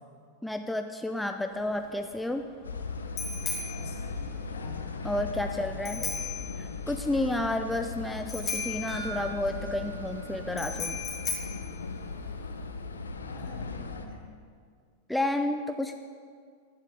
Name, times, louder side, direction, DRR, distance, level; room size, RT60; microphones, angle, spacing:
voice 1, 0.4-2.4 5.0-6.0 6.6-11.0 15.1-15.9, left 1 dB, 5° left, 6 dB, 0.6 m, -31 dB
Bicycle bell, 1.5-12.6, left 5 dB, 25° left, 3.1 m, -38 dB
sound 1, 2.6-14.1, left 4 dB, 75° left, 1.0 m, -38 dB
voice 2, 3.6-4.8 5.3-6.1 13.0-14.3, left 4 dB, 60° left, -1 dB, 2.9 m, -47 dB
sound 2, 8.9-11.4 11.7-11.8 12.2-12.3, right 6 dB, 30° right, 3.9 m, -45 dB
16.5 x 11.0 x 5.1 m, 2.1 s
figure-of-eight pair, 90°, 0 cm